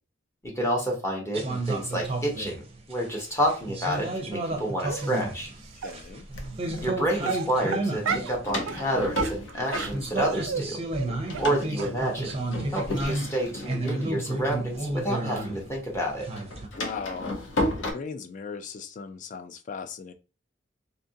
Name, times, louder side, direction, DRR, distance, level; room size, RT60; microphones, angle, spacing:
voice 1, 0.4-5.5 6.8-10.8 11.4-12.4 12.7-16.3, right 1 dB, 15° left, -1 dB, 0.7 m, -29 dB
sound 1, 1.3-9.4 9.9-16.7, right 2 dB, 30° right, 0.5 m, -32 dB
Door, 4.9-5.0 5.7-6.8 8.0-10.6 10.9-15.4 15.7-17.9, left 1 dB, 75° left, 0.7 m, -34 dB
Dog, 4.9-5.2 5.8-5.9 6.7-6.9 7.2-8.4 8.7-8.8 9.1-10.6 10.9-11.1 11.3-11.5 11.8-11.9 12.3-12.4 12.8-12.9 13.1-13.2, right 6 dB, 90° right, 0.4 m, -32 dB
voice 2, 5.7-6.3 16.8-17.5 17.8-20.1, left 5 dB, 40° left, 8 dB, 0.3 m, -38 dB
2.7 x 2.4 x 2.6 m, 0.33 s
head